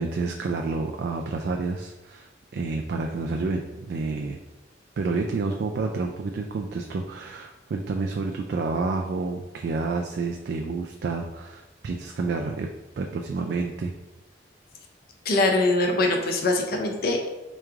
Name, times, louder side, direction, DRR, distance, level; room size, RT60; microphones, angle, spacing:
voice 1, 0.0-4.4 5.0-12.7 13.0-13.9, right 3 dB, 60° right, 2 dB, 0.3 m, -29 dB
voice 2, 15.2-17.3, left 2 dB, 55° left, 2 dB, 0.6 m, -23 dB
3.5 x 3.1 x 3.5 m, 1.0 s
head